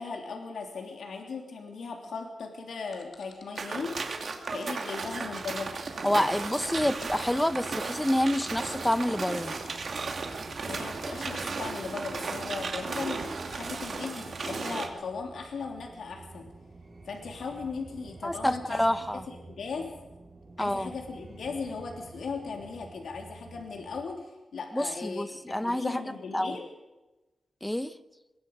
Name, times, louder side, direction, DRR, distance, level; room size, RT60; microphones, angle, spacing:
voice 1, 0.0-4.0 4.5-5.7 10.7-16.5 17.0-19.9 20.6-26.7, left 4 dB, 80° left, 1 dB, 3.3 m, -38 dB
sound 1, 2.9-9.8, left 5 dB, 55° left, 3.3 m, -52 dB
sound 2, 3.5-14.9, right 4 dB, 45° right, 2.5 m, -35 dB
sound 3, 5.0-24.0, right 3 dB, 30° right, 5.1 m, -49 dB
voice 2, 6.0-9.5 18.2-19.2 20.6-20.9 24.7-26.0 26.3-26.6 27.6-27.9, left 1 dB, 5° left, 12 dB, 0.8 m, -28 dB
25.5 x 21.5 x 5.5 m, 1.1 s
wide cardioid pair, 180°, 0 cm